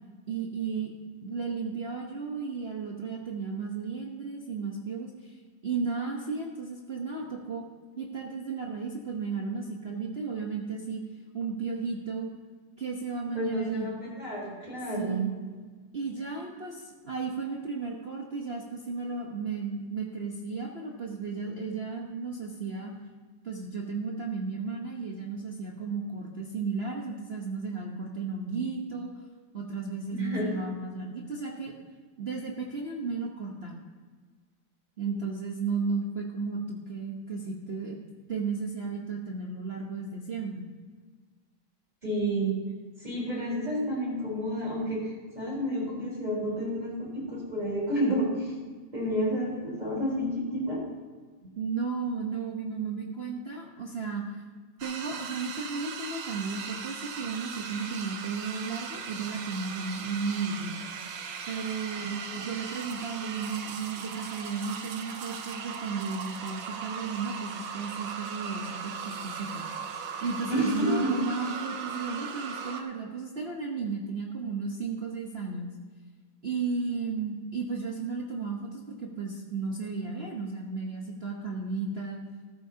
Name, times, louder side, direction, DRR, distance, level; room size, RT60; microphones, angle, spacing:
voice 1, 0.3-0.9 1.2-5.3 5.6-7.6 8.0-11.0 11.3-12.3 12.8-13.9 15.0-15.3 15.9-22.9 23.4-29.1 29.5-31.7 32.2-33.8 35.0-38.0 38.3-40.7 51.4-54.2 54.8-60.8 61.5-69.9 70.2-75.7 76.4-82.2, right 4 dB, 40° right, -1 dB, 1.0 m, -34 dB
voice 2, 13.3-15.3 30.1-30.5 42.0-42.5 43.0-45.1 45.3-48.5 48.9-50.8 62.0-62.4 70.5-71.1, equal, 20° right, -4 dB, 4.1 m, -30 dB
sound 1, 54.8-72.8, right 6 dB, 75° right, 1.7 m, -38 dB
14.5 x 13.0 x 2.8 m, 1.4 s
omnidirectional pair, 2.2 m